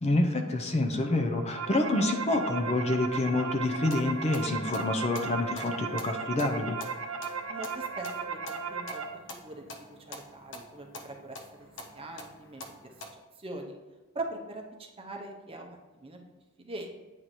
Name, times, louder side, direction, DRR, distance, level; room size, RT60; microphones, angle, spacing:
voice 1, 0.0-6.8, left 2 dB, 35° left, 5 dB, 0.6 m, -27 dB
sound 1, 1.2-9.0, right 5 dB, 85° right, 0.7 m, -36 dB
sound 2, 3.7-13.1, left 2 dB, 65° left, 0.8 m, -47 dB
voice 2, 7.5-9.0 9.4-12.7 13.1-13.7 14.1-16.2 16.6-16.9, right 2 dB, 30° right, 2 dB, 0.7 m, -42 dB
8.9 x 3.1 x 4.1 m, 1.2 s
head